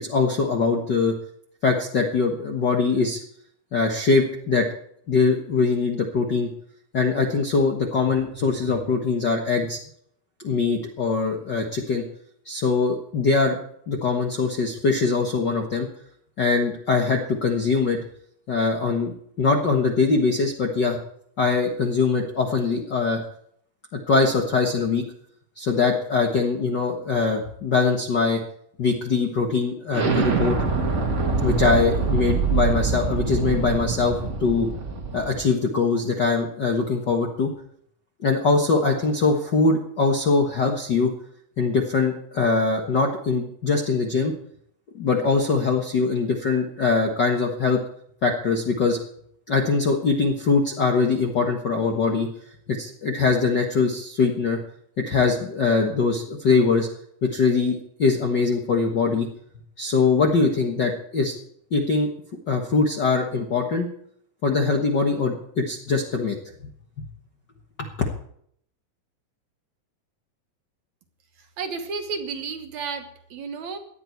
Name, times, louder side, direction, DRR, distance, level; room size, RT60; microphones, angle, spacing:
voice 1, 0.0-1.1 1.6-3.2 3.7-4.7 5.1-6.5 6.9-9.8 10.4-12.0 12.4-13.6 13.9-15.9 16.4-18.0 18.5-21.0 21.4-23.2 23.9-25.0 25.6-28.4 28.8-30.6 31.4-34.7 35.1-37.5 38.2-41.1 41.6-44.3 45.0-47.8 48.2-49.0 49.5-52.3 52.8-54.6 55.0-56.9 57.2-59.3 59.8-61.4 61.7-62.1 62.5-63.9 64.4-66.3 67.0-67.1 67.8-67.9, left 4 dB, 50° left, 1 dB, 1.3 m, -22 dB
Explosion, 29.9-35.4, right 4 dB, 35° right, 1.2 m, -24 dB
voice 2, 71.4-73.8, right 5 dB, 65° right, 6 dB, 2.3 m, -32 dB
18.0 x 11.5 x 4.6 m, 0.66 s
omnidirectional pair, 4.0 m